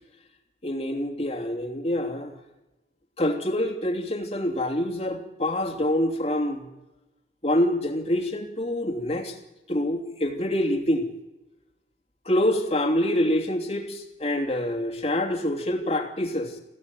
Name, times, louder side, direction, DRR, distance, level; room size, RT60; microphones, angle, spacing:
voice 1, 0.6-2.3 3.2-6.7 7.4-9.4 9.7-11.1 12.2-16.6, left 1 dB, 35° left, 3 dB, 3.0 m, -26 dB
22.0 x 16.0 x 9.3 m, 1.0 s
head